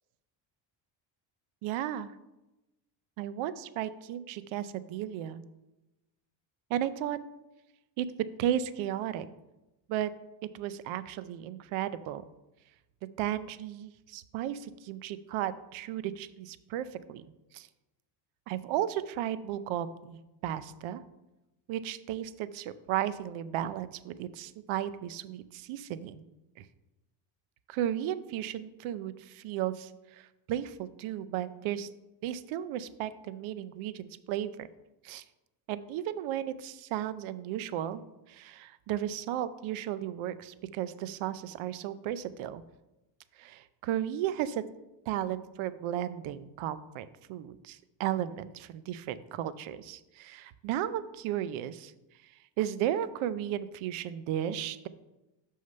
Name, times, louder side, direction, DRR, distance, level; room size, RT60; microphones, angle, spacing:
voice 1, 1.6-2.2 3.2-5.4 6.7-7.2 8.0-8.1 8.4-9.3 9.9-10.1 10.5-12.2 13.2-17.2 17.5-17.7 18.5-21.0 21.7-26.2 26.6-26.7 27.7-31.9 32.2-34.7 35.0-35.2 35.7-38.0 38.3-42.6 43.4-44.6 45.1-51.9 52.6-54.9, right 11 dB, 85° right, 15 dB, 0.6 m, -34 dB
6.4 x 5.6 x 5.5 m, 0.99 s
cardioid pair, 140°, 47 cm